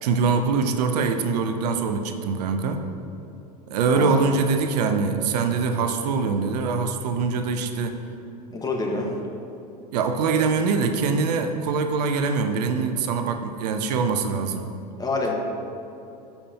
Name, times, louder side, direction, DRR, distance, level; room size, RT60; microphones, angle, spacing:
voice 1, 0.0-2.8 3.7-8.0 9.9-14.7, right 4 dB, 70° right, 7 dB, 0.7 m, -23 dB
voice 2, 8.5-9.1 15.0-15.3, left 3 dB, 20° left, 0 dB, 1.4 m, -27 dB
13.5 x 5.7 x 2.9 m, 2.7 s
hypercardioid pair, 90°, 21 cm